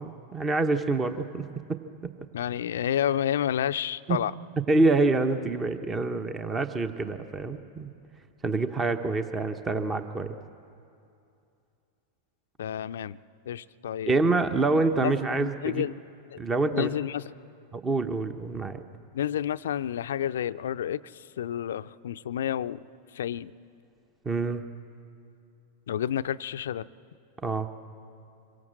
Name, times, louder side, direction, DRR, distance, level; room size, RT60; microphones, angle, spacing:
voice 1, 0.0-2.1 4.1-4.2 4.7-7.9 8.4-10.4 14.1-15.8 16.4-16.9 17.7-18.8 24.2-24.6 27.4-27.7, right 3 dB, 20° right, 9 dB, 1.0 m, -26 dB
voice 2, 2.3-4.3 12.6-13.2 13.5-14.1 15.0-16.0 16.3-16.4 16.7-17.2 19.1-22.8 23.1-23.5 25.9-26.9, left 10 dB, 60° left, 13 dB, 0.5 m, -30 dB
26.0 x 23.5 x 7.5 m, 2.6 s
figure-of-eight pair, 90°, 0 cm